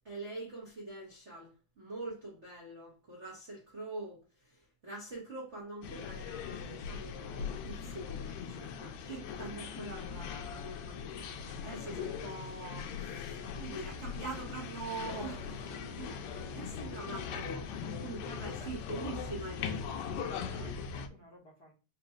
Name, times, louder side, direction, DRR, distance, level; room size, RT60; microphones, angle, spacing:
voice 1, 0.0-20.7, right 3 dB, 75° right, 0.6 m, -44 dB
sound 1, 5.8-21.1, left 6 dB, 80° left, 1.6 m, -40 dB
sound 2, 11.2-16.6, right 4 dB, 60° right, 2.2 m, -62 dB
voice 2, 18.6-19.4 20.4-21.7, equal, 60° left, 1.0 m, -57 dB
4.9 x 3.0 x 2.3 m
omnidirectional pair, 3.6 m